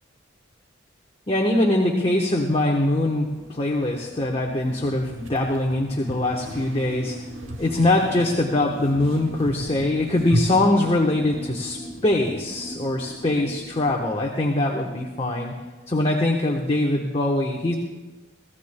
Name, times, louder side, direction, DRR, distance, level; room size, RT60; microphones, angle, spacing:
voice 1, 1.3-7.2 7.6-15.5 15.9-17.7, left 1 dB, 30° left, -1 dB, 1.1 m, -22 dB
sound 1, 2.7-12.3, right 1 dB, 80° right, 0.9 m, -36 dB
sound 2, 5.9-13.9, equal, 10° right, 2.4 m, -39 dB
25.0 x 15.0 x 2.2 m, 1.2 s
head